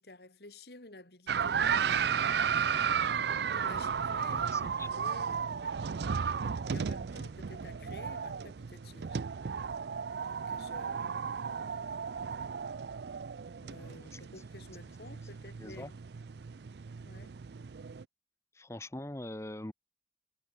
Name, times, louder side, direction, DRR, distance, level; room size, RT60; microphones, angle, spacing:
voice 1, 0.0-2.3 3.5-5.7 6.7-9.4 10.2-11.3 13.6-16.0 17.0-17.4, left 2 dB, 65° left, 3.0 m, -51 dB
sound 1, 1.3-18.0, right 6 dB, 65° right, 0.5 m, -34 dB
voice 2, 4.3-4.9 13.8-14.2 15.6-15.9 18.5-19.7, left 1 dB, 15° left, 0.8 m, -43 dB
head